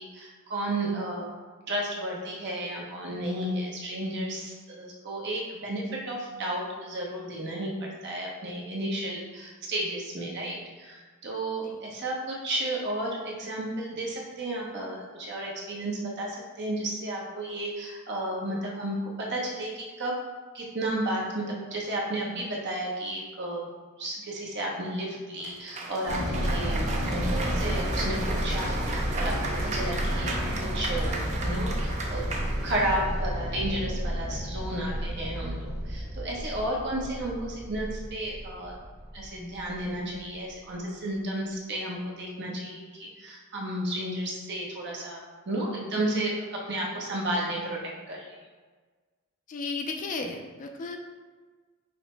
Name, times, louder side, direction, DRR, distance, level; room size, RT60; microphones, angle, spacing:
voice 1, 0.0-1.3 1.7-20.2 20.5-23.7 24.0-32.3 32.6-38.7 39.1-45.2 45.5-47.8 48.1-48.3, right 1 dB, 50° right, -3 dB, 0.8 m, -33 dB
Cheering / Applause, 25.4-33.1, right 2 dB, 30° right, 0.5 m, -35 dB
sound 1, 26.1-40.3, equal, 85° right, 1.3 m, -31 dB
voice 2, 49.5-51.0, left 3 dB, 35° left, 4 dB, 0.3 m, -34 dB
5.8 x 2.0 x 3.2 m, 1.4 s
head